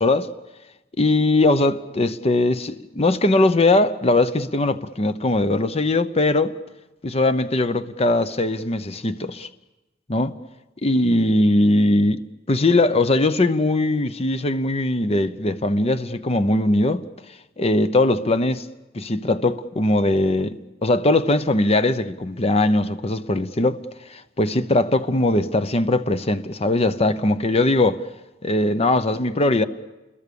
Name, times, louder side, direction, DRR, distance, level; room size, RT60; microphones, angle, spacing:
voice 1, 0.0-0.3 1.0-6.5 7.0-9.5 10.1-10.4 10.8-17.0 17.6-18.7 18.9-23.8 24.1-28.0 28.4-29.6, left 2 dB, 35° left, 0.8 m, -20 dB
29.5 x 22.0 x 7.0 m
head